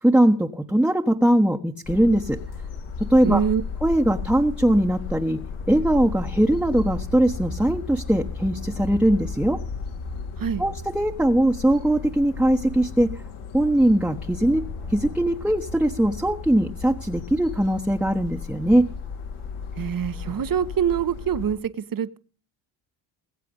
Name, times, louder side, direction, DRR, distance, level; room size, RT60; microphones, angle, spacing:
voice 1, 0.0-2.4 3.1-3.4 3.8-5.4 5.7-9.6 10.6-13.1 13.5-14.6 14.9-18.8, right 1 dB, 5° right, 1.1 m, -20 dB
sound 1, 1.8-21.5, left 5 dB, 80° left, 3.3 m, -34 dB
voice 2, 3.2-3.6 10.4-10.6 19.8-22.2, right 8 dB, 45° right, 1.2 m, -25 dB
21.0 x 7.5 x 5.4 m
supercardioid pair, 65°, 47 cm